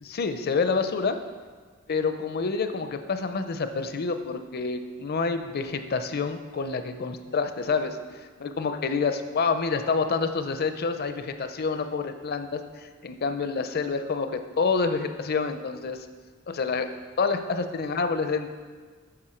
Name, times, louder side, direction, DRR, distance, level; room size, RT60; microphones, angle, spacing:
voice 1, 0.0-1.2 1.9-16.0 16.5-16.9 17.2-18.5, left 4 dB, 50° left, 8 dB, 0.6 m, -28 dB
8.7 x 6.7 x 4.4 m, 1.5 s
head